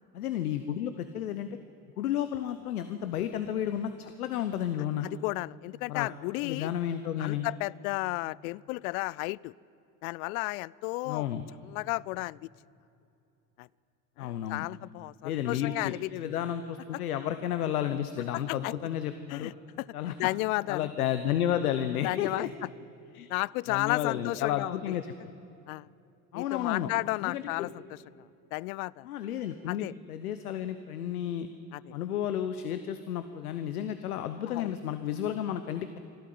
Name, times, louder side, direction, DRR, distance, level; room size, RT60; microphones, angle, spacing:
voice 1, 0.1-1.6 2.0-5.1 5.9-6.1 6.4-7.5 11.1-11.4 14.2-14.7 15.2-19.5 19.9-20.1 20.7-22.5 23.1-23.3 23.7-25.3 26.3-26.9 27.2-27.7 29.0-31.5 31.9-36.0, left 10 dB, 90° left, 10 dB, 0.9 m, -32 dB
voice 2, 5.0-6.7 7.2-9.5 10.0-11.3 11.6-12.5 13.6-13.7 14.2-16.1 18.3-18.7 19.3-19.5 19.8-19.9 20.2-20.9 22.0-22.5 23.3-25.0 25.7-25.9 26.3-28.0 28.5-29.1 29.7-29.9 31.7-31.9 34.5-34.7, left 23 dB, 75° left, 24 dB, 0.5 m, -33 dB
26.0 x 12.0 x 9.4 m, 2.8 s
hypercardioid pair, 70°, 43 cm